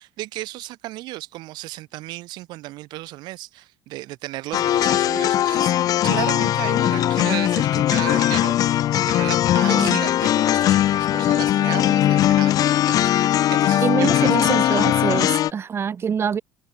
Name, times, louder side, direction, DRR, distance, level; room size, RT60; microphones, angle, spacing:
voice 1, 0.0-5.8 6.0-14.9, right 18 dB, 70° right, 3.1 m, -34 dB
sound 1, 4.5-15.5, left 12 dB, 55° left, 0.9 m, -19 dB
voice 2, 13.8-16.4, right 7 dB, 35° right, 1.1 m, -25 dB
supercardioid pair, 105°, 8 cm